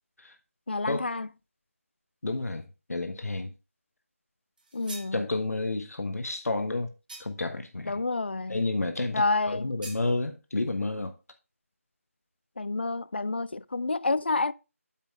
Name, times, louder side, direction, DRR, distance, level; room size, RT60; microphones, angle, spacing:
voice 1, 0.7-1.3 4.7-5.3 7.9-8.6 9.1-9.7 12.6-14.5, left 3 dB, 45° left, 0.4 m, -29 dB
voice 2, 2.2-3.5 5.1-6.9 7.2-8.0 8.5-9.2 9.5-11.1, left 2 dB, 85° left, 1.3 m, -30 dB
sound 1, 4.6-5.2 7.1-7.5 9.8-10.1, right 2 dB, 35° right, 1.8 m, -44 dB
8.8 x 4.4 x 4.7 m
figure-of-eight pair, 175°, 8 cm